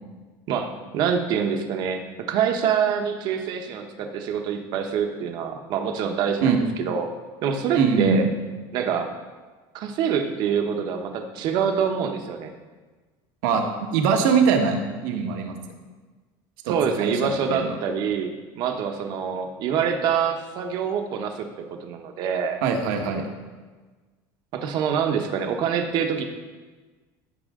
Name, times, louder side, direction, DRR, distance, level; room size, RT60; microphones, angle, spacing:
voice 1, 0.5-6.5 6.8-7.1 7.4-8.3 8.7-9.1 9.7-12.5 16.7-21.5 21.8-22.6 24.5-26.2, right 7 dB, 45° right, 5 dB, 1.0 m, -25 dB
voice 2, 7.7-8.3 13.4-15.6 16.6-17.8 22.6-23.3, right 5 dB, 80° right, 3 dB, 1.5 m, -22 dB
15.0 x 6.2 x 3.7 m, 1.4 s
cardioid pair, 170°, 10 cm